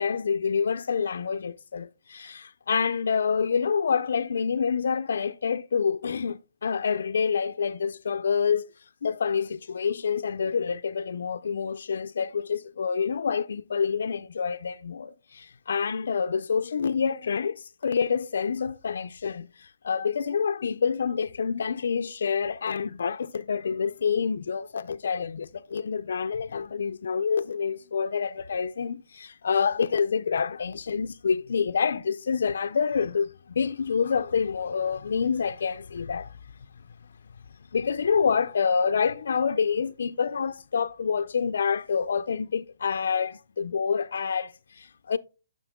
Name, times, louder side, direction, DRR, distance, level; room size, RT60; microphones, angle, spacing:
voice 1, 0.0-8.7 9.0-33.3 33.6-36.3 37.7-45.2, left 6 dB, 65° left, 0.4 m, -27 dB
9.9 x 6.5 x 3.5 m
hypercardioid pair, 175°, 0 cm